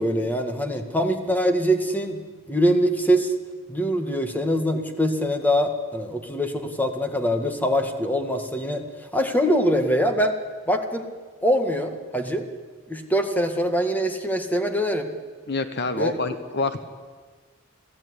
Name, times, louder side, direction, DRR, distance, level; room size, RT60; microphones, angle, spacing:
voice 1, 0.0-2.2 2.5-3.3 3.7-8.8 9.1-10.4 10.7-11.1 11.4-12.5 12.9-15.1 16.0-16.1, equal, 10° left, 5 dB, 1.9 m, -23 dB
voice 2, 15.5-16.8, left 3 dB, 55° left, 10 dB, 1.2 m, -26 dB
28.0 x 17.0 x 9.9 m, 1.5 s
head